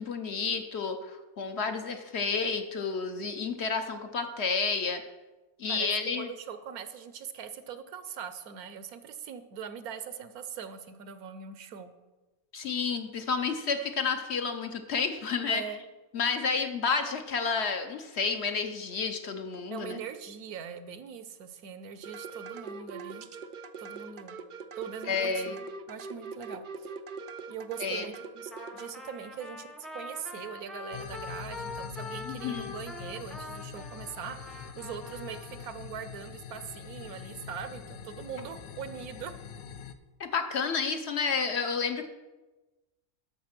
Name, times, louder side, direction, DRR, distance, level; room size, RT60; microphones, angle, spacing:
voice 1, 0.0-5.0 5.6-6.3 12.5-15.6 16.1-20.0 25.1-25.6 27.8-28.1 32.2-32.7 40.2-42.1, left 5 dB, 50° left, 7 dB, 1.0 m, -30 dB
voice 2, 6.2-11.9 15.5-15.8 19.7-23.3 23.8-24.4 24.8-26.9 27.5-39.3, right 7 dB, 75° right, 11 dB, 1.3 m, -41 dB
sound 1, 22.0-28.9, right 4 dB, 55° right, 0.5 m, -42 dB
Trumpet, 28.5-35.6, left 2 dB, ahead, 0.6 m, -43 dB
sound 2, 30.9-39.9, left 7 dB, 75° left, 1.2 m, -44 dB
12.0 x 6.6 x 6.0 m, 1.1 s
omnidirectional pair, 1.6 m